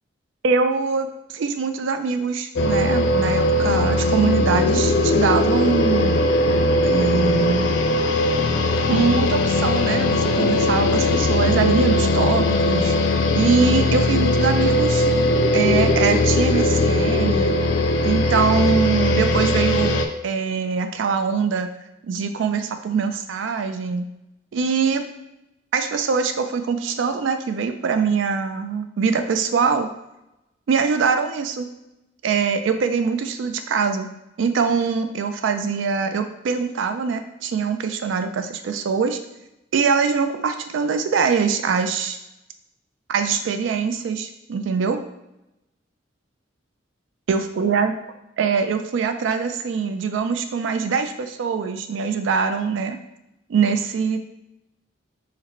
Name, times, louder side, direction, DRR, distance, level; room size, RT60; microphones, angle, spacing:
voice 1, 0.4-6.2 6.8-7.7 8.9-13.0 13.3-15.1 15.5-17.5 18.0-21.7 22.0-24.1 24.5-25.0 25.7-29.9 30.7-31.7 32.2-34.1 34.4-39.2 39.7-42.2 43.1-45.0 47.3-47.9 48.4-53.0 53.5-54.2, right 5 dB, 85° right, 8 dB, 0.3 m, -23 dB
sound 1, 2.6-20.1, left 2 dB, 70° left, 0.4 m, -19 dB
4.0 x 2.1 x 4.3 m, 0.90 s
head